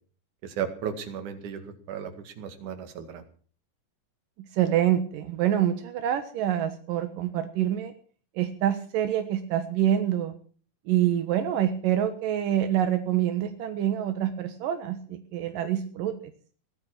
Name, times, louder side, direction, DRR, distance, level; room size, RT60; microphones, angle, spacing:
voice 1, 0.4-3.2, right 8 dB, 65° right, 8 dB, 3.5 m, -35 dB
voice 2, 4.5-7.9 8.4-10.3 10.9-16.2, right 11 dB, 85° right, 8 dB, 3.0 m, -26 dB
19.0 x 12.5 x 6.0 m, 0.43 s
omnidirectional pair, 3.8 m